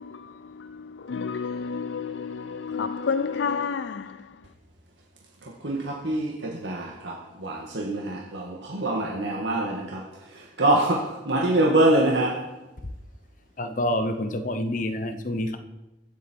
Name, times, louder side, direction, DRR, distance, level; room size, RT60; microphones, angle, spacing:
voice 1, 0.0-4.2, left 5 dB, 75° left, 0.4 m, -30 dB
voice 2, 5.6-10.0 10.6-12.4, right 1 dB, 75° right, 1.8 m, -24 dB
voice 3, 13.6-15.6, left 1 dB, 45° left, 0.9 m, -27 dB
22.5 x 8.3 x 4.5 m
head